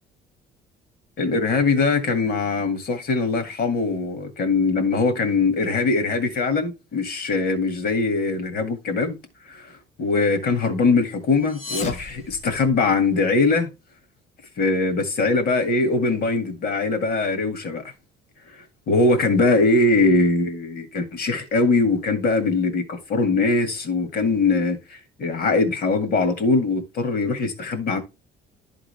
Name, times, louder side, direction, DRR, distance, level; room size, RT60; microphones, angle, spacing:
voice 1, 1.2-9.2 9.5-9.6 10.0-13.7 14.6-17.8 18.9-28.0, left 3 dB, 60° left, 2.0 m, -21 dB
sound 1, 11.3-13.2, left 4 dB, 40° left, 1.4 m, -35 dB
11.0 x 3.9 x 3.3 m
cardioid pair, 100°, 18 cm